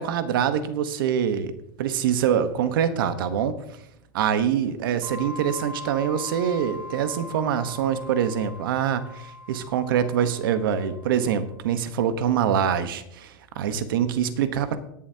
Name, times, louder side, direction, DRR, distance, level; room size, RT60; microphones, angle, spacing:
voice 1, 0.0-1.5 1.8-3.6 4.1-14.8, right 8 dB, 70° right, 11 dB, 1.1 m, -24 dB
sound 1, 5.0-11.5, left 2 dB, 45° right, 2.3 m, -41 dB
17.5 x 11.0 x 2.9 m, 0.80 s
supercardioid pair, 170°, 12 cm